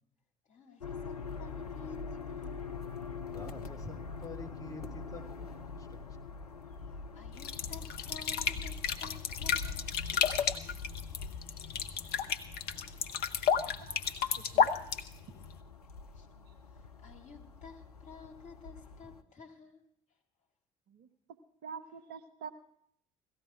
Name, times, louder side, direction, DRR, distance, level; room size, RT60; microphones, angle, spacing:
voice 1, 0.4-2.7 6.8-10.0 16.1-16.3 16.6-19.8, left 5 dB, 40° left, 1 dB, 3.2 m, -52 dB
sound 1, 0.8-19.2, left 5 dB, 90° left, 0.5 m, -44 dB
voice 2, 3.3-6.2, left 3 dB, 20° left, 1 dB, 3.1 m, -47 dB
sound 2, 7.4-15.6, left 7 dB, 55° left, 1.0 m, -32 dB
voice 3, 14.4-14.7 20.9-21.1 21.6-22.5, right 6 dB, 55° right, 8 dB, 1.2 m, -45 dB
17.5 x 14.5 x 4.6 m, 0.66 s
figure-of-eight pair, 55°, 19 cm